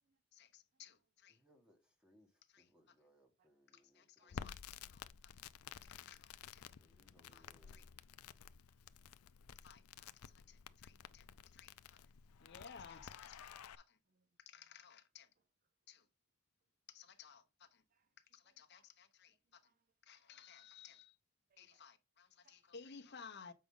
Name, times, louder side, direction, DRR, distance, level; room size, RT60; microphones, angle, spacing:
voice 1, 0.3-1.4 2.5-2.9 3.7-4.6 4.9-5.5 5.8-6.7 7.3-7.9 9.5-9.8 10.1-11.8 12.0-12.1 12.4-14.0 14.4-15.3 15.9-16.1 16.9-17.8 18.2-19.7 20.0-21.2 21.6-23.5, left 6 dB, 50° left, 0.9 m, -58 dB
voice 2, 1.3-4.6 6.8-7.9, equal, 5° right, 1.6 m, -71 dB
voice 3, 4.2-6.0 6.5-7.1 8.7-9.6 10.9-12.1 12.4-12.7 14.1-14.6 17.9-18.2 18.4-18.9 19.3-20.4 21.5-21.9 22.3-22.7, right 4 dB, 40° right, 0.5 m, -83 dB
Crackle, 4.3-13.8, left 8 dB, 80° left, 0.5 m, -53 dB
7.5 x 5.1 x 3.7 m
head